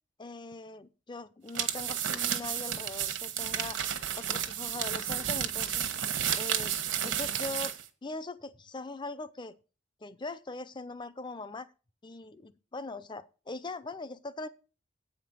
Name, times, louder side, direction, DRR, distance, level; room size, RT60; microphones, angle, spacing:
voice 1, 0.2-3.8 4.2-5.8 6.4-6.8 7.0-7.8 8.0-9.6 10.0-11.7 12.0-14.5, left 3 dB, 25° left, 0.5 m, -41 dB
sound 1, 1.5-7.8, right 9 dB, 65° right, 1.1 m, -32 dB
8.5 x 5.1 x 7.3 m
head